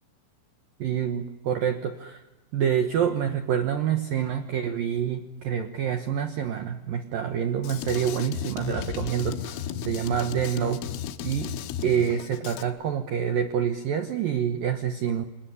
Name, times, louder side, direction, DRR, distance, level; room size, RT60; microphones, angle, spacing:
voice 1, 0.8-2.2 2.5-10.8 11.2-11.5 11.8-15.2, right 8 dB, 75° right, 7 dB, 2.1 m, -27 dB
Drum kit, 7.6-12.6, left 9 dB, 80° left, 3.7 m, -34 dB
27.5 x 18.5 x 10.0 m, 1.0 s
omnidirectional pair, 5.9 m